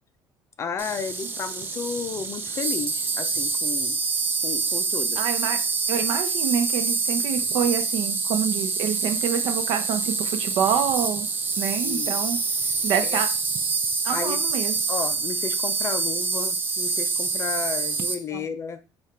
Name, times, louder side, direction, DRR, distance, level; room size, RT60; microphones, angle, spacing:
voice 1, 0.6-4.0 4.4-5.2 11.8-12.2 13.0-13.2 14.1-14.4 14.9-18.8, left 6 dB, 35° left, 10 dB, 0.5 m, -33 dB
Insect, 0.8-18.1, right 4 dB, 25° right, 0.5 m, -26 dB
voice 2, 5.2-5.6 5.9-11.3 11.6-12.4 12.8-13.3 14.0-14.8 18.3-18.4, right 8 dB, 70° right, 7 dB, 0.8 m, -27 dB
5.2 x 2.4 x 4.2 m, 0.32 s
cardioid pair, 150°, 9 cm